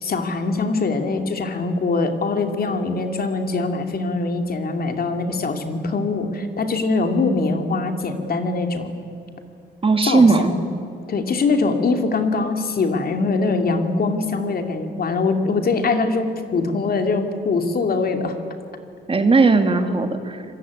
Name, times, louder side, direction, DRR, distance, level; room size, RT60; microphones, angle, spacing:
voice 1, 0.0-8.9 10.1-10.6 11.1-18.3, left 3 dB, 50° left, 6 dB, 2.8 m, -22 dB
voice 2, 9.8-10.5 19.1-20.4, right 3 dB, 30° right, 7 dB, 2.3 m, -17 dB
25.5 x 21.5 x 9.7 m, 2.4 s
cardioid pair, 90°, 20 cm